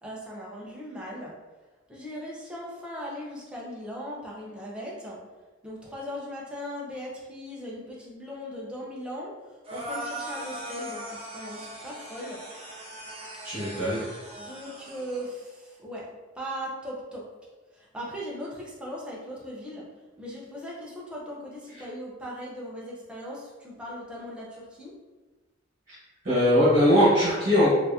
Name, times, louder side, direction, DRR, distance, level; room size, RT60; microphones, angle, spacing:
voice 1, 0.0-1.3 1.9-5.2 5.6-9.3 9.7-12.4 14.4-16.1 16.3-17.2 17.7-19.8 20.2-24.9, equal, 5° right, -5 dB, 0.7 m, -38 dB
sound 1, 9.6-15.3, right 1 dB, 30° right, 0.9 m, -39 dB
voice 2, 13.4-14.0 26.2-27.7, equal, 45° right, -11 dB, 1.3 m, -20 dB
4.5 x 2.7 x 2.7 m, 1.3 s
head